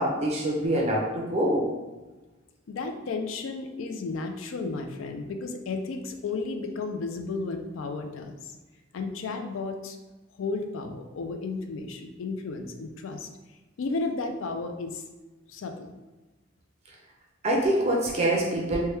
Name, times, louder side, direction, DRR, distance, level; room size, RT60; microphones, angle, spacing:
voice 1, 0.0-1.7 17.4-18.8, right 1 dB, 30° right, -1 dB, 0.4 m, -25 dB
voice 2, 2.7-8.5 8.9-10.0 10.4-13.3 13.8-15.0 15.5-15.9, left 3 dB, 75° left, 5 dB, 0.4 m, -33 dB
3.0 x 2.2 x 3.2 m, 1.2 s
head